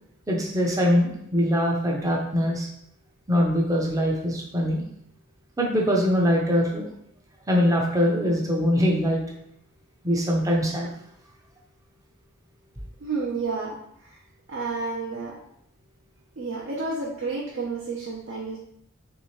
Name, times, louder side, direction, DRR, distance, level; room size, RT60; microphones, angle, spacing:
voice 1, 0.3-2.7 3.3-4.8 5.6-6.9 7.5-9.2 10.0-10.9, equal, 15° right, -1 dB, 0.6 m, -22 dB
voice 2, 13.0-13.8 14.5-15.3 16.4-18.6, right 4 dB, 65° right, -5 dB, 0.7 m, -30 dB
3.5 x 2.7 x 3.1 m, 0.72 s
head